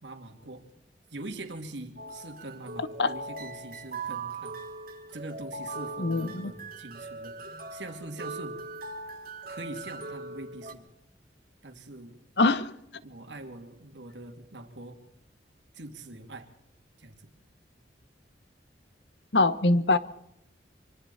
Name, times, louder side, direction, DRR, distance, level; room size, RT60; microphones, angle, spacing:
voice 1, 0.0-0.7 1.1-4.6 5.1-7.3 7.7-8.6 9.5-10.8 11.6-12.2 13.0-15.0 15.7-16.5 17.0-17.2, right 2 dB, 90° right, 5 dB, 2.8 m, -43 dB
sound 1, 2.0-10.7, right 3 dB, 55° right, 2.8 m, -40 dB
voice 2, 6.0-6.5 12.4-12.7 19.3-20.0, left 2 dB, 70° left, 14 dB, 1.2 m, -23 dB
25.0 x 25.0 x 4.3 m, 0.80 s
head